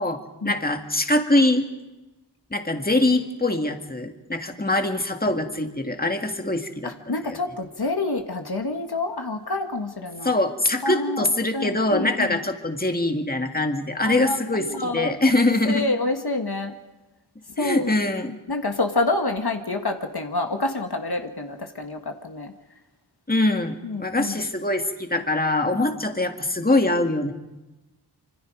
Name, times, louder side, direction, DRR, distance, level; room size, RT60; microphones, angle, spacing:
voice 1, 0.0-1.7 2.5-7.4 10.2-15.9 17.6-18.4 23.3-27.3, left 2 dB, 20° left, 5 dB, 2.1 m, -23 dB
voice 2, 6.8-10.4 10.8-12.4 14.0-15.3 15.7-16.7 17.6-17.9 18.5-22.5 23.8-24.5 25.7-25.9, left 2 dB, 70° left, 4 dB, 1.8 m, -28 dB
26.5 x 25.0 x 5.1 m, 1.1 s
wide cardioid pair, 60°, 40 cm